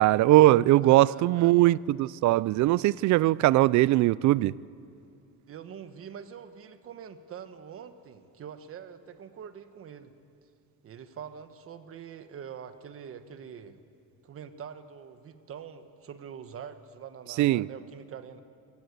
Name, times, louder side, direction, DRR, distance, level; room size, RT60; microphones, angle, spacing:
voice 1, 0.0-4.5 17.4-17.7, right 16 dB, 60° right, 0.5 m, -21 dB
voice 2, 0.8-1.7 5.5-10.1 10.8-13.8 14.2-18.4, right 8 dB, 40° right, 1.3 m, -44 dB
27.0 x 17.0 x 8.2 m
cardioid pair, 155°, 33 cm